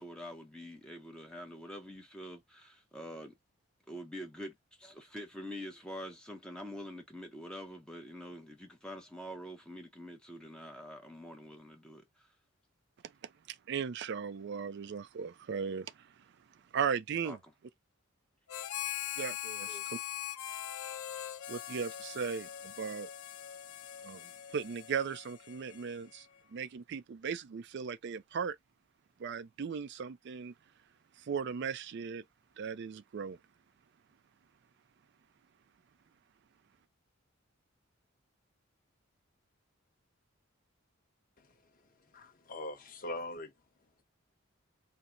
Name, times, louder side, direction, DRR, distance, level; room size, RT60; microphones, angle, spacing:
voice 1, 0.0-3.3 3.9-12.3 17.2-17.4 19.7-19.8, equal, 5° left, 0.6 m, -46 dB
voice 2, 13.5-16.1 16.7-17.4 19.2-20.0 21.5-23.1 24.0-26.3 26.5-28.6 29.2-30.5 31.2-32.2 32.6-33.4, right 6 dB, 50° right, 0.3 m, -37 dB
Harmonica, 18.5-26.2, left 12 dB, 85° left, 0.6 m, -42 dB
voice 3, 41.4-44.0, left 1 dB, 40° left, 1.0 m, -44 dB
4.2 x 2.0 x 3.7 m
head